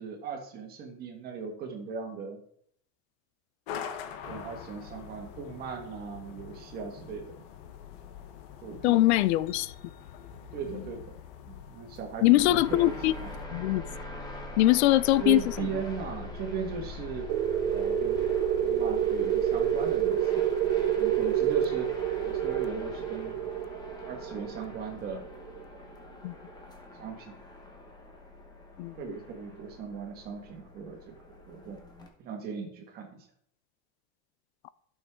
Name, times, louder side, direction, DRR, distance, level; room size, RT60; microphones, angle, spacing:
voice 1, 0.0-2.4 4.3-7.3 8.6-9.0 10.5-11.2 11.5-12.9 13.2-13.3 15.2-17.3 17.7-18.3 18.6-20.4 20.9-23.4 24.0-25.2 26.0-26.1 27.0-27.4 29.0-31.8 32.2-33.2, right 6 dB, 30° right, 1.6 m, -38 dB
sound 1, 3.7-13.4, left 8 dB, 55° left, 1.1 m, -45 dB
voice 2, 8.8-9.7 12.2-13.1 13.5-13.8 14.6-15.4 26.2-26.3 28.8-29.0, left 16 dB, 75° left, 0.5 m, -22 dB
sound 2, 12.4-32.1, left 2 dB, 10° left, 1.0 m, -43 dB
sound 3, 17.3-25.6, right 10 dB, 90° right, 0.8 m, -28 dB
12.0 x 6.4 x 3.7 m
supercardioid pair, 180°, 34 cm